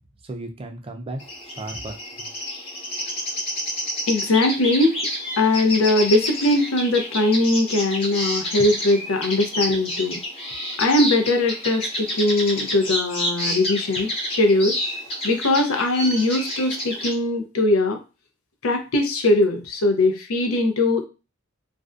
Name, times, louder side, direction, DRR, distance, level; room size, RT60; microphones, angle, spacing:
voice 1, 0.2-2.3, right 2 dB, 25° right, 4 dB, 0.4 m, -35 dB
sound 1, 1.2-17.1, equal, 30° left, 0.7 m, -29 dB
voice 2, 4.1-4.9 5.4-10.2 10.8-14.8 15.2-18.0 18.6-21.0, left 2 dB, 85° left, 5 dB, 0.5 m, -20 dB
2.5 x 2.1 x 2.3 m, 0.30 s
head